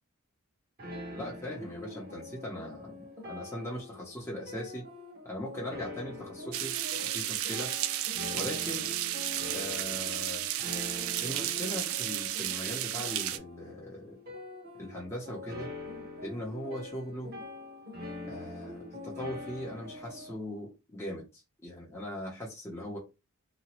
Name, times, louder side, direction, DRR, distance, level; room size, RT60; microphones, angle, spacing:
sound 1, 0.8-20.4, left 1 dB, 45° right, 1.1 m, -44 dB
voice 1, 1.1-4.9 5.2-6.8 7.0-7.7 8.3-8.9 9.5-10.7 11.2-14.2 14.8-15.7 16.2-17.3 18.2-23.0, left 1 dB, 15° left, 0.7 m, -40 dB
sound 2, 6.5-13.4, right 13 dB, 70° right, 0.3 m, -33 dB
2.9 x 2.2 x 2.9 m
head